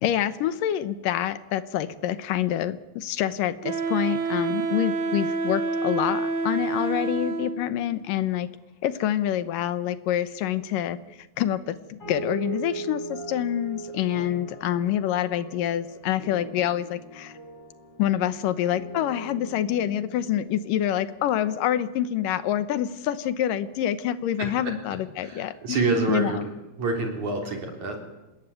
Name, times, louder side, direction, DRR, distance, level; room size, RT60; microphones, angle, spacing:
voice 1, 0.0-8.5 8.8-11.0 11.4-17.3 18.0-25.8 26.1-26.5, left 11 dB, 70° left, 14 dB, 2.2 m, -26 dB
Wind instrument woodwind instrument, 3.6-7.8, right 3 dB, 85° right, 5.3 m, -28 dB
sound 1, 12.0-21.7, right 3 dB, 30° left, 9.0 m, -40 dB
voice 2, 25.2-26.5 26.8-28.0, right 3 dB, 45° right, 3 dB, 4.9 m, -27 dB
27.5 x 20.0 x 9.2 m, 1.0 s
omnidirectional pair, 4.8 m